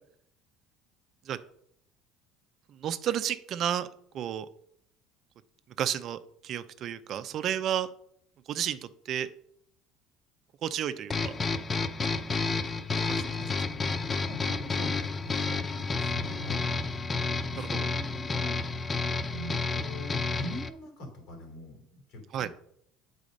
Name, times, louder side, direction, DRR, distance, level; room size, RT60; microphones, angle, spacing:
voice 1, 2.7-3.9 4.1-4.5 5.8-7.9 8.5-9.3 10.6-11.3 13.1-13.2 17.6-17.9 22.3-22.5, right 10 dB, 50° right, 12 dB, 0.5 m, -32 dB
sound 1, 11.1-20.7, left 4 dB, 25° left, 0.5 m, -30 dB
voice 2, 13.1-13.5 14.3-18.6 19.3-22.5, left 2 dB, 65° left, 3 dB, 2.9 m, -43 dB
8.4 x 4.1 x 5.1 m, 0.69 s
supercardioid pair, 115°, 0 cm